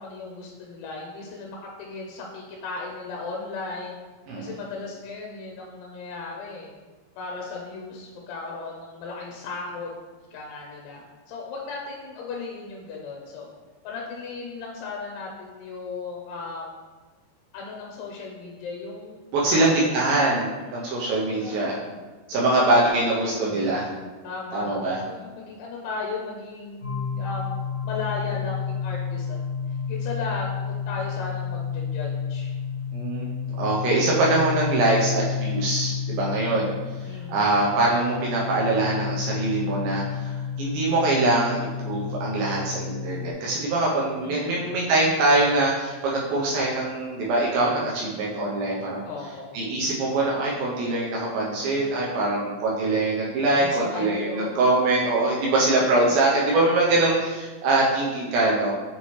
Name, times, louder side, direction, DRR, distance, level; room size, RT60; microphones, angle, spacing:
voice 1, 0.0-4.0 4.4-6.7 7.2-9.9 10.3-13.5 13.8-16.7 17.5-19.2 19.5-19.7 20.6-21.6 22.3-23.7 24.2-27.6 27.8-29.4 29.9-32.5 37.0-37.5 44.2-44.8 49.1-49.6 53.5-54.6 55.8-55.9, left 4 dB, 90° left, -1 dB, 3.1 m, -36 dB
voice 2, 19.3-21.8 22.3-23.9 24.5-25.0 32.9-33.2 33.6-36.7 37.3-49.0 49.5-58.7, right 2 dB, 80° right, -4 dB, 2.1 m, -23 dB
sound 1, 26.8-43.3, left 6 dB, 75° left, 1.7 m, -31 dB
7.4 x 4.2 x 3.1 m, 1.3 s
omnidirectional pair, 5.3 m